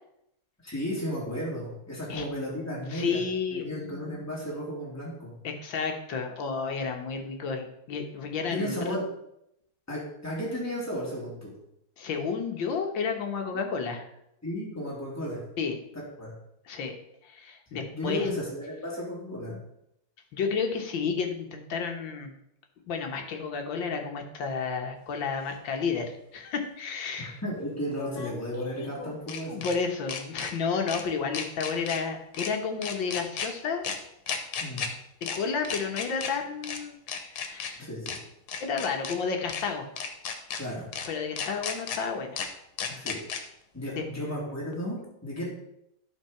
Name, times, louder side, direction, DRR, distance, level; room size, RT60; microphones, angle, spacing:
voice 1, 0.6-3.2 3.5-5.4 8.5-9.0 9.9-11.5 13.5-13.6 14.4-15.4 15.9-16.3 17.7-19.6 27.2-29.7 34.6-34.8 37.8-38.2 40.5-40.9 43.0-43.2 43.7-45.5, equal, 5° left, -5 dB, 3.1 m, -34 dB
voice 2, 2.9-4.2 5.4-9.0 12.0-14.0 15.6-15.8 16.7-17.0 17.3-18.3 20.3-22.3 22.9-27.4 29.4-33.9 35.2-37.0 37.3-37.9 38.6-39.9 41.1-42.4 42.9-43.1, left 5 dB, 65° left, 4 dB, 1.9 m, -31 dB
sound 1, 25.5-25.6 27.9-29.8 30.1-30.5 30.9-31.0 31.3-32.0 32.3-32.5 32.8-33.5 33.8-34.0 34.3-34.9 35.2-35.4 35.6-36.3 36.6-36.8 37.1-37.7 38.1-38.2 38.5-39.1 39.5-39.6 40.0-40.6 40.9-41.1 41.4-42.0 42.4-42.5 42.8-43.4, left 6 dB, 85° left, 1.9 m, -34 dB
11.5 x 4.6 x 5.7 m, 0.79 s
omnidirectional pair, 2.3 m